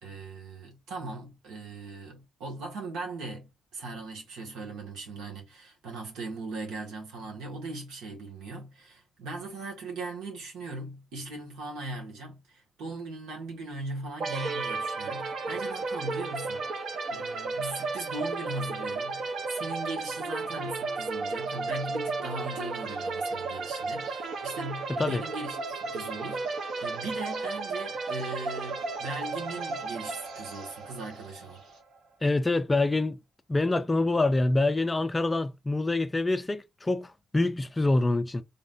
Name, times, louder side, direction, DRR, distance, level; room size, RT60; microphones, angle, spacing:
voice 1, 0.0-31.6, right 2 dB, 85° right, 1.6 m, -39 dB
sound 1, 14.2-31.8, right 3 dB, 50° right, 0.7 m, -34 dB
sound 2, 21.4-31.8, right 3 dB, 70° right, 2.3 m, -56 dB
voice 2, 32.2-33.2 33.5-38.4, left 2 dB, 15° left, 0.3 m, -26 dB
3.8 x 3.7 x 2.5 m
cardioid pair, 150°, 0 cm